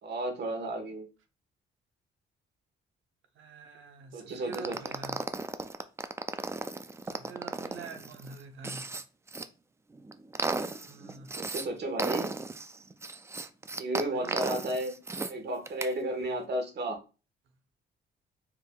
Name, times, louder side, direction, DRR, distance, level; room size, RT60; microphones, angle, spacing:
voice 1, 0.0-1.1 4.1-4.9 11.4-12.3 13.8-14.9 15.3-17.0, right 1 dB, 55° right, 1.3 m, -33 dB
voice 2, 3.4-5.2 7.1-8.9 10.6-11.3 14.1-14.6, right 4 dB, 80° right, 0.8 m, -46 dB
sound 1, 4.5-9.4 9.9-11.7 12.0-15.3 15.7-15.9, right 3 dB, 15° right, 0.3 m, -35 dB
4.5 x 3.5 x 2.3 m
cardioid pair, 90°, 20 cm